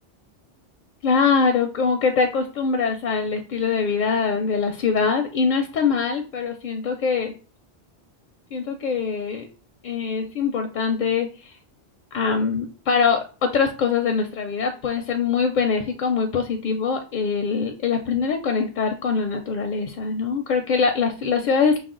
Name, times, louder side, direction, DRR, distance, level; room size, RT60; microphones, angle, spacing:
voice 1, 1.0-7.3 8.5-9.5 9.8-11.6 12.1-21.8, left 5 dB, 60° left, 5 dB, 0.6 m, -23 dB
5.7 x 2.1 x 3.7 m, 0.36 s
omnidirectional pair, 1.1 m